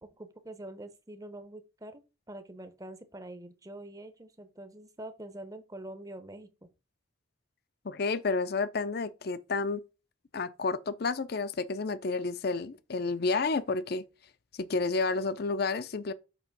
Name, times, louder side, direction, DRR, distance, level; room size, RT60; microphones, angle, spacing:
voice 1, 0.0-2.0 2.3-6.7, right 1 dB, 15° right, 0.7 m, -45 dB
voice 2, 7.8-9.8 10.3-14.0 14.5-16.1, left 4 dB, 50° left, 0.5 m, -30 dB
7.0 x 3.0 x 5.8 m
head